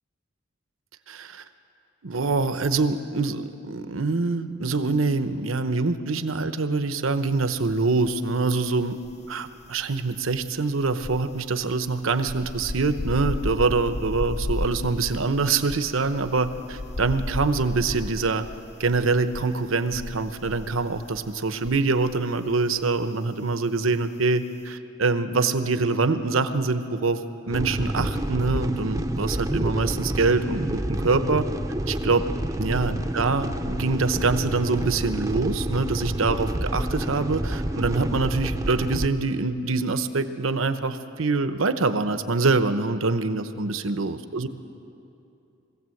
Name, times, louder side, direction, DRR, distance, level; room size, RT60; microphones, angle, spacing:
voice 1, 1.1-1.4 2.0-9.0 9.3-18.5 18.8-27.2 27.5-31.5 31.9-32.3 32.6-44.5, right 3 dB, 80° right, 10 dB, 0.9 m, -25 dB
sound 1, 7.6-8.4 8.7-22.2 22.5-22.7, left 2 dB, 30° left, 0.4 m, -34 dB
sound 2, 27.5-39.1, right 1 dB, 15° right, 0.7 m, -28 dB
22.0 x 16.0 x 7.8 m, 2.8 s
head